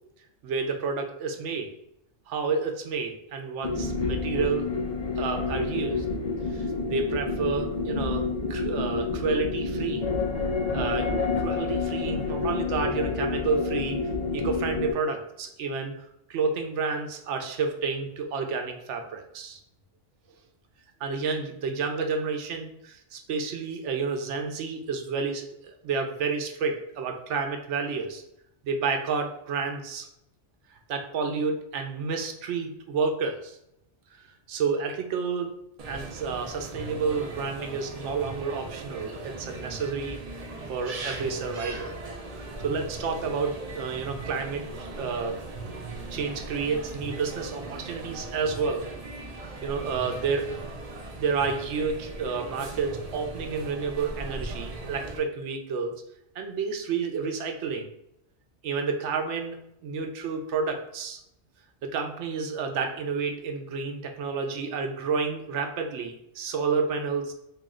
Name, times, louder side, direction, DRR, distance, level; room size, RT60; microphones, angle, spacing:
voice 1, 0.4-1.7 2.3-4.7 5.2-6.0 6.5-10.1 10.7-14.0 14.3-19.6 21.0-28.2 28.6-30.1 30.9-33.6 34.5-35.5 35.9-40.4 40.7-42.0 42.6-45.4 46.1-48.9 49.6-50.5 51.2-55.9 56.3-57.9 58.6-59.6 59.8-61.2 61.8-67.3, right 5 dB, 80° right, 4 dB, 0.9 m, -30 dB
sound 1, 3.6-14.9, left 4 dB, 40° left, 0.6 m, -29 dB
sound 2, 35.8-55.2, right 3 dB, 50° right, 0.5 m, -39 dB
3.1 x 2.7 x 3.6 m, 0.79 s
omnidirectional pair, 1.2 m